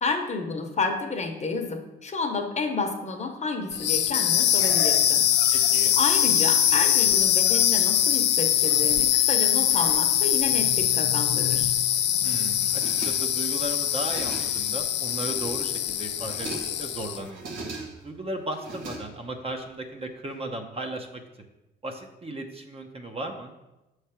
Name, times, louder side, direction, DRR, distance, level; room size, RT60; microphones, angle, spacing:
voice 1, 0.0-5.2 5.5-11.7, left 4 dB, 35° left, 5 dB, 0.9 m, -30 dB
sound 1, 3.7-17.3, left 10 dB, 60° left, 0.5 m, -23 dB
voice 2, 5.5-6.0 12.2-17.4 18.0-21.2 21.8-23.5, right 1 dB, 30° right, 4 dB, 0.8 m, -36 dB
sound 2, 12.6-13.5 13.9-14.7 15.1-15.8 16.1-16.9 17.2-18.1 18.5-19.5, right 2 dB, 80° right, 1.3 m, -39 dB
7.1 x 3.3 x 5.7 m, 1.0 s
cardioid pair, 90°, 20 cm